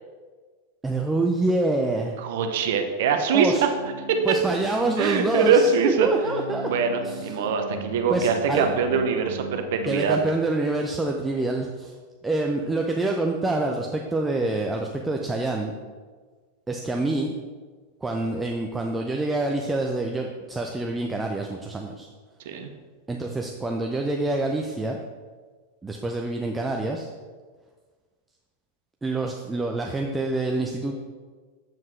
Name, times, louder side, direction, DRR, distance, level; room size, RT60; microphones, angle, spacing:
voice 1, 0.8-2.2 3.3-3.6 4.3-6.7 7.0-7.5 8.1-8.7 9.9-11.9 12.2-15.8 16.7-17.3 18.0-22.1 23.1-25.0 25.8-27.1 29.0-31.0, right 2 dB, 10° right, 1 dB, 0.6 m, -26 dB
voice 2, 2.2-3.5 4.1-4.2 5.0-6.1 6.7-10.2 22.5-22.7, right 5 dB, 55° right, 6 dB, 0.7 m, -23 dB
sound 1, 3.7-10.3, right 4 dB, 85° right, 0.8 m, -37 dB
7.6 x 7.3 x 3.2 m, 1.5 s
figure-of-eight pair, 90°, 0 cm